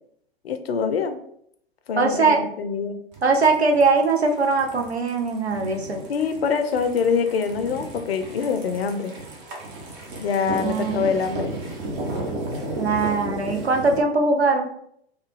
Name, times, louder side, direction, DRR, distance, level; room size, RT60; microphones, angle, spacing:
voice 1, 0.4-1.2 1.9-3.0 6.1-9.1 10.2-11.5, left 6 dB, 70° left, 8 dB, 0.5 m, -24 dB
voice 2, 2.0-2.4 3.2-6.0 10.6-11.0 12.8-14.7, right 3 dB, 90° right, 3 dB, 0.6 m, -21 dB
sound 1, 3.1-14.0, right 2 dB, 45° right, 0.8 m, -34 dB
3.3 x 2.2 x 3.1 m, 0.69 s
figure-of-eight pair, 95°, 31 cm